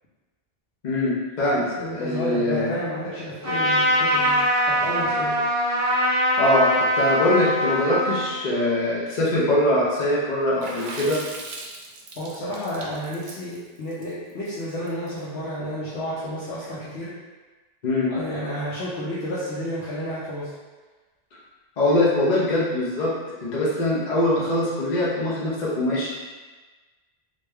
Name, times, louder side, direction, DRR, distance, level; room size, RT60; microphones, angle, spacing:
voice 1, 0.8-1.6 1.9-2.8 6.4-6.7 6.9-11.2 17.8-18.1 21.8-23.1 23.4-26.1, left 1 dB, 50° left, -6 dB, 0.8 m, -22 dB
voice 2, 1.5-4.4 4.6-5.4 12.2-17.1 18.1-20.5, equal, 85° left, -10 dB, 1.0 m, -31 dB
Trumpet, 3.4-8.4, equal, 20° right, 0.6 m, -22 dB
Water / Splash splatter, 10.6-15.1, right 3 dB, 60° right, 0.6 m, -38 dB
3.2 x 2.6 x 3.4 m, 1.3 s
omnidirectional pair, 1.1 m